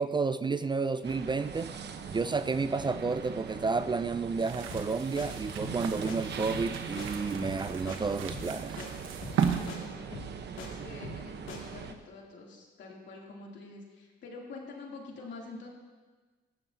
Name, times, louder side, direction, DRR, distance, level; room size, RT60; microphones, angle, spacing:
voice 1, 0.0-1.7 2.1-8.8, right 4 dB, 25° right, 12 dB, 0.4 m, -31 dB
sound 1, 1.0-11.9, right 6 dB, 60° right, 1.0 m, -41 dB
sound 2, 4.4-9.7, right 7 dB, 90° right, 1.1 m, -36 dB
sound 3, 4.7-4.9 5.2-5.3 5.6-5.8 6.1-6.2 6.5-6.7 7.0-7.1 7.4-7.6 7.9-8.0 8.3-8.5 8.8-8.9 9.2-9.4 9.7-9.8 10.1-10.7 11.0-11.2 11.5-11.6, left 3 dB, 85° left, 2.5 m, -42 dB
voice 2, 9.5-10.1 10.6-15.7, left 3 dB, 65° left, -2 dB, 2.9 m, -46 dB
18.0 x 12.5 x 2.8 m, 1.3 s
cardioid pair, 90°, 20 cm